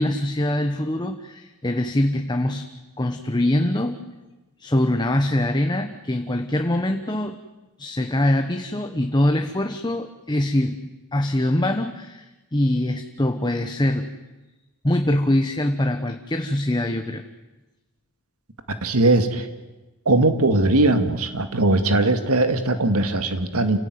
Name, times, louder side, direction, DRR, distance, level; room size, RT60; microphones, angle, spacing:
voice 1, 0.0-2.7 3.0-4.0 4.6-7.4 7.8-14.1 14.8-17.2, left 1 dB, 20° left, 6 dB, 1.1 m, -23 dB
voice 2, 18.8-19.5 20.1-23.8, right 2 dB, 85° right, 8 dB, 2.2 m, -20 dB
29.0 x 17.0 x 9.6 m, 1.1 s
head